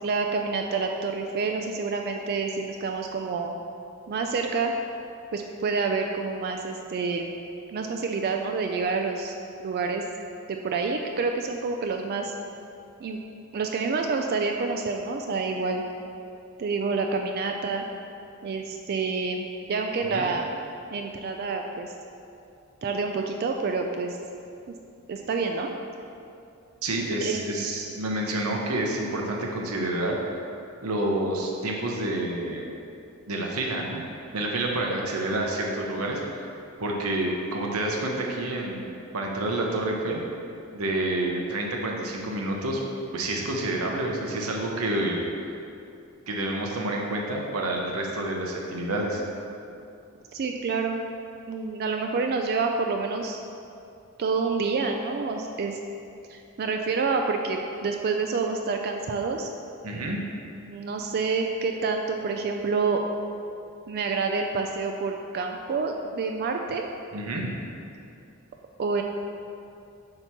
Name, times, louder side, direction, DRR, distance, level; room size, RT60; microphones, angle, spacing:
voice 1, 0.0-3.5 4.1-4.7 5.3-7.3 7.7-9.4 9.6-10.0 10.5-12.3 13.0-13.2 13.5-15.8 16.6-17.8 18.4-20.5 20.9-21.9 22.8-24.2 25.1-25.7 27.2-27.5 50.3-51.0 51.5-53.4 54.2-55.8 56.3-59.5 60.7-63.0 63.9-66.8 68.8-69.0, right 4 dB, 45° right, 3 dB, 0.3 m, -28 dB
voice 2, 26.8-30.2 30.8-32.7 33.3-34.0 34.3-36.5 36.8-38.9 39.1-40.2 40.7-42.8 43.1-45.3 46.3-49.2 59.8-60.2 67.1-67.5, right 1 dB, 85° right, -1 dB, 0.8 m, -28 dB
7.7 x 2.9 x 5.9 m, 2.6 s
head